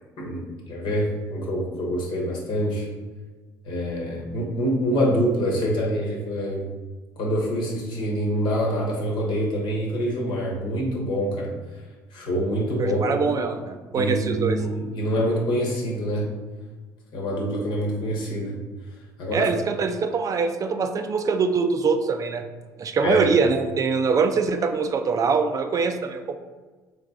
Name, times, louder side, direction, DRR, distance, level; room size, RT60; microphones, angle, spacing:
voice 1, 0.2-2.9 3.6-6.7 7.2-11.5 12.1-13.2 13.9-16.3 17.1-18.6 19.2-19.5 23.0-23.3, equal, 60° left, -2 dB, 1.2 m, -25 dB
voice 2, 12.8-14.6 19.3-22.4 22.8-26.4, right 5 dB, 40° right, 7 dB, 0.4 m, -23 dB
3.3 x 3.2 x 3.8 m, 1.3 s
hypercardioid pair, 65°, 9 cm